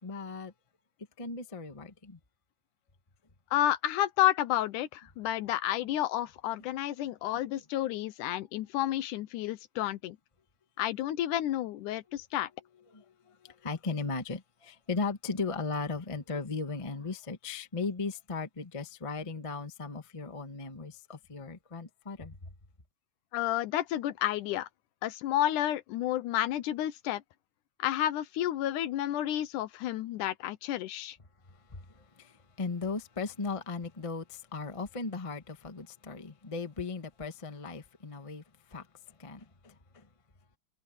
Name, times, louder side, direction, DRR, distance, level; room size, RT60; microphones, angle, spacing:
voice 1, 0.0-0.5 1.2-2.2 12.1-12.2 12.9-22.5 31.5-40.1, left 4 dB, 35° left, 0.4 m, -37 dB
voice 2, 3.5-10.2 10.8-12.5 23.3-24.7 25.0-27.2 27.8-31.2, left 13 dB, 75° left, 2.2 m, -30 dB
omnidirectional pair, 3.8 m